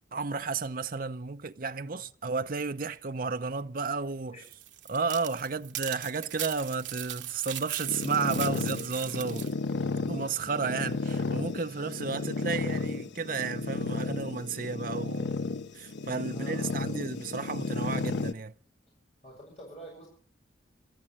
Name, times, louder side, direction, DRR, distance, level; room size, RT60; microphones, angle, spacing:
voice 1, 0.1-4.4 4.9-9.5 10.1-15.4 15.7-18.5, right 4 dB, 50° right, 0.6 m, -32 dB
sound 1, 4.4-9.5, right 12 dB, 85° right, 1.1 m, -39 dB
sound 2, 7.9-18.3, left 3 dB, 75° left, 0.7 m, -33 dB
voice 2, 16.3-17.0 19.2-20.1, right 1 dB, 35° left, 6.5 m, -48 dB
27.0 x 13.5 x 3.1 m
head